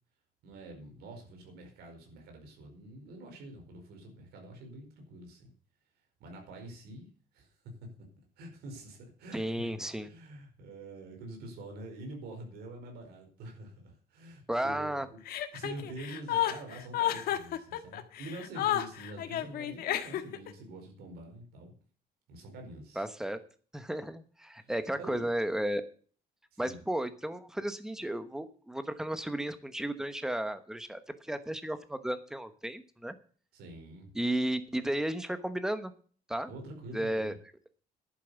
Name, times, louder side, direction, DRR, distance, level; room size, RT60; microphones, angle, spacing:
voice 1, 0.4-5.5 6.2-7.5 8.4-9.7 10.0-15.2 15.5-21.7 22.3-23.1 24.6-25.3 26.5-26.8 33.5-34.1 36.5-37.4, right 2 dB, 85° right, 3 dB, 4.7 m, -46 dB
voice 2, 9.3-10.1 14.5-15.1 23.0-23.4 23.7-25.8 26.6-33.2 34.1-35.9 36.3-36.5 36.9-37.3, right 1 dB, 5° right, 11 dB, 1.0 m, -33 dB
Chuckle chortle, 15.3-20.5, left 12 dB, 70° left, 1.5 m, -31 dB
11.0 x 8.5 x 7.0 m, 0.42 s
cardioid pair, 170°, 16 cm